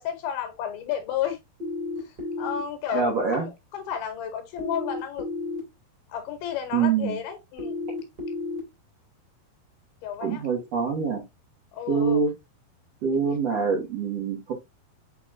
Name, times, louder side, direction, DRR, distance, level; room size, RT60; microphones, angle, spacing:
voice 1, 0.0-1.4 2.0-5.3 6.1-7.9 10.0-10.4 11.7-12.2, left 9 dB, 75° left, 2.5 m, -32 dB
sound 1, 1.6-2.6 4.6-5.6 7.6-8.6, left 2 dB, 35° right, 2.0 m, -32 dB
voice 2, 2.9-3.4 6.7-7.2 10.2-11.2 11.9-12.3 13.0-14.5, right 5 dB, 70° right, 1.5 m, -25 dB
6.7 x 3.1 x 2.5 m
omnidirectional pair, 4.8 m